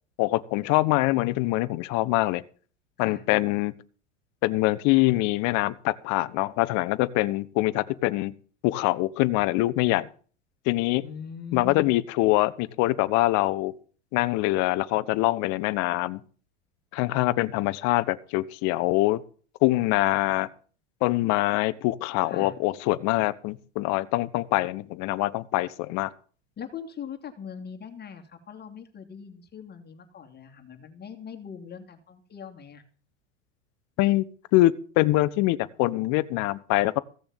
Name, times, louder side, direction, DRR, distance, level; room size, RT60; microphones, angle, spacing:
voice 1, 0.2-2.4 3.0-3.7 4.4-8.3 8.6-10.1 10.7-11.0 11.5-13.7 14.1-16.2 16.9-19.2 19.6-20.5 21.0-26.1 34.0-34.2 34.5-37.0, left 18 dB, 50° left, 13 dB, 0.9 m, -24 dB
voice 2, 11.0-11.9 22.2-22.6 26.6-32.8, left 7 dB, 25° left, 4 dB, 2.7 m, -41 dB
15.5 x 7.0 x 7.1 m, 0.42 s
hypercardioid pair, 95°, 36 cm